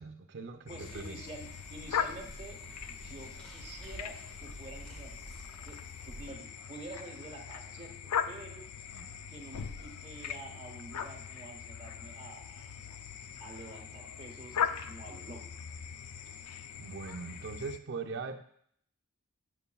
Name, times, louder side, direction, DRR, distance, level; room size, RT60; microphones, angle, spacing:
voice 1, 0.0-1.2 8.9-9.1 16.8-18.4, right 4 dB, 50° right, 3 dB, 0.5 m, -41 dB
sound 1, 0.7-17.8, left 8 dB, 90° left, 0.4 m, -40 dB
voice 2, 0.7-5.2 5.6-8.7 9.3-12.8 13.4-15.5, right 2 dB, 25° right, 0 dB, 1.1 m, -48 dB
sound 2, 0.8-6.3, right 1 dB, 5° left, 1.1 m, -50 dB
7.7 x 6.8 x 2.3 m, 0.65 s
head